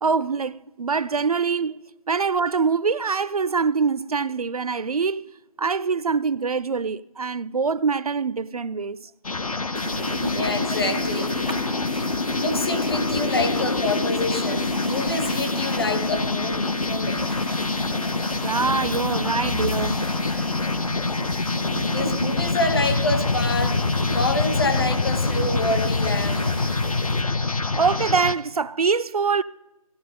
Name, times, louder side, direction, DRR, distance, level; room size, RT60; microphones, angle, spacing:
voice 1, 0.0-1.8 2.1-5.3 5.6-9.1 18.4-20.0 27.8-29.4, right 5 dB, 75° right, 0.4 m, -24 dB
sound 1, 9.2-28.3, left 3 dB, 70° left, 0.7 m, -25 dB
sound 2, 9.8-27.2, equal, 15° left, 0.6 m, -35 dB
voice 2, 10.3-11.5 12.4-17.4 21.9-23.8 24.1-26.4, left 2 dB, 40° left, 1.3 m, -27 dB
16.5 x 7.8 x 5.2 m
figure-of-eight pair, 170°, 19 cm